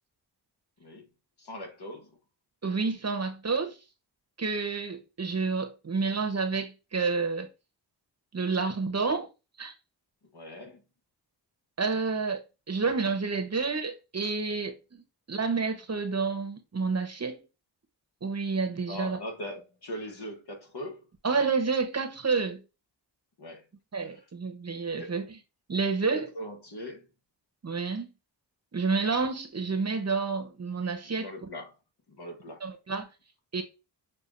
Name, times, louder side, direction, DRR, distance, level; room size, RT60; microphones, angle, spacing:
voice 1, 1.4-2.1 10.3-10.8 18.9-21.1 23.4-23.7 24.0-24.3 25.0-25.1 26.1-27.1 31.0-31.7 32.1-32.6, equal, 60° left, 1.3 m, -41 dB
voice 2, 2.6-3.8 4.4-7.5 8.3-9.3 9.6-9.7 11.8-12.4 12.7-14.7 15.3-17.4 18.2-19.2 21.2-22.6 23.9-25.3 25.7-26.3 27.6-28.1 28.7-31.3 32.6-33.1 33.5-33.6, right 4 dB, 35° right, 0.9 m, -29 dB
6.6 x 2.5 x 2.5 m
cardioid pair, 55°, 44 cm